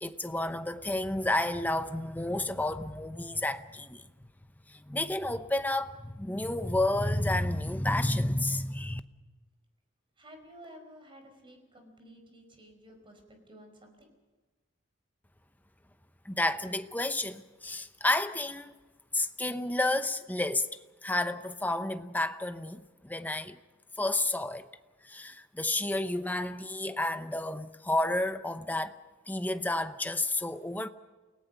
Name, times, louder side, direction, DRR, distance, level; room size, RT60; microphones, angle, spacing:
voice 1, 0.0-4.0 4.7-9.0 16.2-18.7 19.1-20.7 21.0-23.6 24.0-24.7 25.0-29.0 29.3-30.9, left 1 dB, 10° left, 0.8 m, -31 dB
voice 2, 10.2-14.1, equal, 25° right, 5.1 m, -53 dB
29.0 x 18.5 x 5.8 m
head